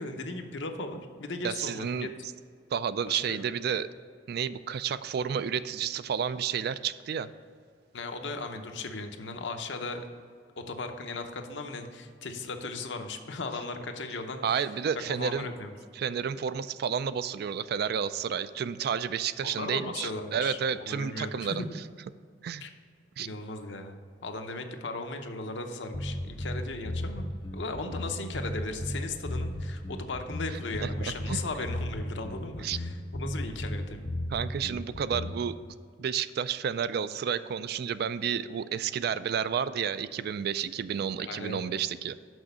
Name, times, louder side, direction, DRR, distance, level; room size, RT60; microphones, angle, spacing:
voice 1, 0.0-2.1 3.1-3.4 7.9-10.1 10.6-14.7 14.9-15.7 19.4-21.7 22.6-22.7 23.2-34.1 41.2-41.6, left 3 dB, 75° left, 5 dB, 0.8 m, -37 dB
voice 2, 1.4-2.1 2.7-3.9 4.3-7.3 14.4-15.5 16.0-21.6 22.4-22.6 23.2-23.3 30.8-31.4 32.6-32.8 34.3-35.6 36.0-42.2, right 7 dB, 60° right, 14 dB, 0.3 m, -31 dB
sound 1, 25.9-35.5, left 1 dB, 25° left, 0.5 m, -35 dB
6.2 x 6.0 x 6.8 m, 2.1 s
head